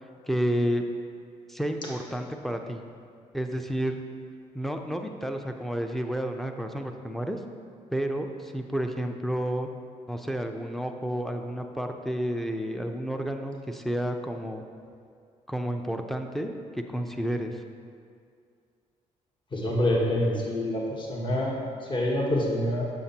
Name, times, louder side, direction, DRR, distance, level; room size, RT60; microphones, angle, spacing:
voice 1, 0.3-0.8 1.5-2.8 3.3-4.0 4.5-7.4 7.9-9.7 10.1-14.6 15.5-17.6, equal, ahead, 5 dB, 0.5 m, -30 dB
voice 2, 19.5-22.8, left 1 dB, 35° left, -2 dB, 1.2 m, -26 dB
7.4 x 6.5 x 2.8 m, 2.2 s
cardioid pair, 75°, 14 cm